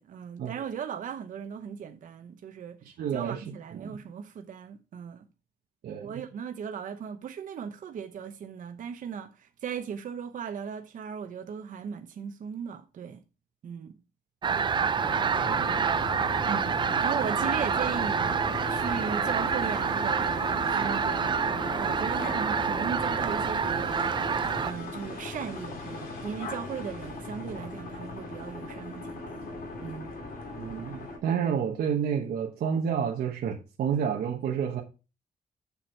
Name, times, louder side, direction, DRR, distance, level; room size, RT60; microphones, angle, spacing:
voice 1, 0.0-2.8 3.1-5.2 6.0-13.2 13.6-14.0 16.5-18.4 18.7-21.4 21.8-24.0 24.6-29.6 29.8-30.1, right 7 dB, 55° right, 0.9 m, -37 dB
voice 2, 3.0-3.4 3.7-4.0 5.8-6.1 15.4-15.7 30.5-34.8, right 7 dB, 85° right, 1.2 m, -30 dB
sound 1, 14.4-24.7, right 6 dB, 30° right, 0.4 m, -27 dB
sound 2, 15.0-31.2, left 2 dB, 70° left, 2.6 m, -38 dB
7.1 x 7.1 x 4.5 m
wide cardioid pair, 170°, 16 cm